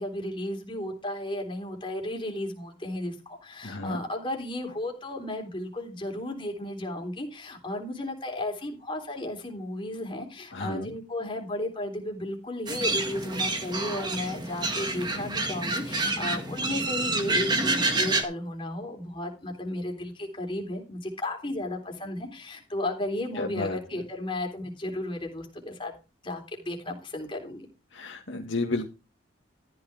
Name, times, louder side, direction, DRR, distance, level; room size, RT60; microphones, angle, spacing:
voice 1, 0.0-26.0 26.2-27.7, left 1 dB, 25° left, 2 dB, 3.5 m, -34 dB
voice 2, 3.6-4.0 10.5-10.9 23.3-23.8 27.9-28.9, left 2 dB, 70° left, 0 dB, 1.8 m, -32 dB
sound 1, 12.7-18.2, right 2 dB, 20° right, 1.9 m, -28 dB
14.0 x 9.5 x 3.5 m, 0.30 s
head